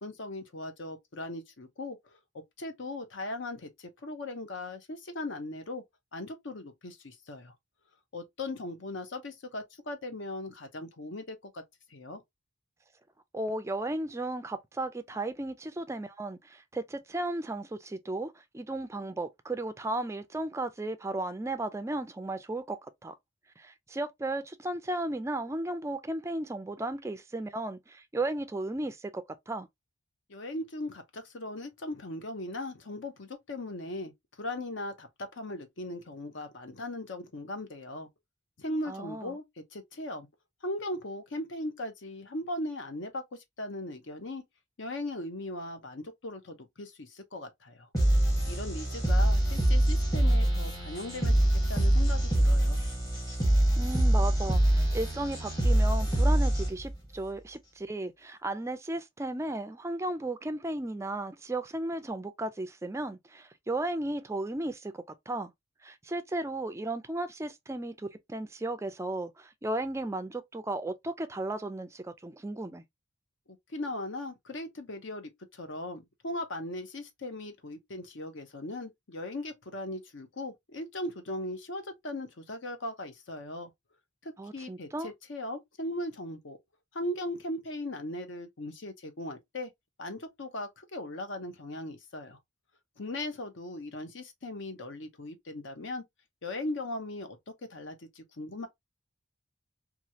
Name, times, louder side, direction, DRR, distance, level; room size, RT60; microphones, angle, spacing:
voice 1, 0.0-2.0 2.6-5.8 6.1-7.5 8.1-11.6 11.9-12.2 30.3-34.1 34.4-38.1 38.6-39.4 39.7-40.3 40.6-43.2 43.6-44.4 44.8-47.9 48.5-52.8 73.7-83.7 84.2-86.6 86.9-89.7 90.0-92.4 93.0-96.0 96.4-97.4 97.7-98.7, left 1 dB, 65° left, 0.8 m, -38 dB
voice 2, 13.3-23.1 23.6-29.7 38.9-39.4 53.8-65.5 65.8-72.8 84.4-85.1, right 2 dB, 15° right, 0.3 m, -35 dB
sound 1, 47.9-56.9, right 1 dB, 20° left, 1.1 m, -25 dB
3.0 x 2.4 x 2.7 m
head